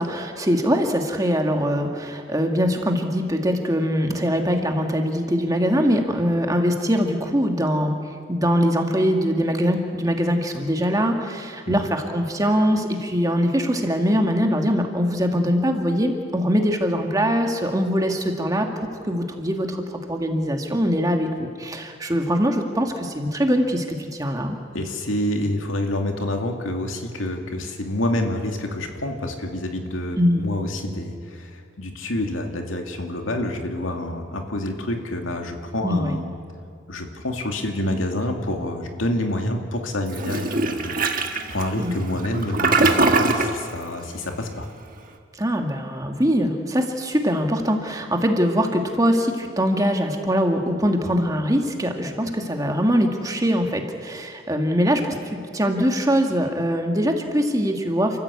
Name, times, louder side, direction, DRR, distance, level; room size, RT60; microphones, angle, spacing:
voice 1, 0.0-7.9 8.3-24.6 30.2-30.4 35.8-36.1 41.8-41.9 45.3-58.2, equal, 20° right, 3 dB, 1.9 m, -22 dB
voice 2, 24.7-36.3 36.9-41.0 41.5-44.7, left 1 dB, 85° left, 3 dB, 2.5 m, -27 dB
Toilet flush, 40.1-43.6, right 3 dB, 45° right, 1.5 m, -22 dB
29.5 x 14.5 x 8.3 m, 2.3 s
head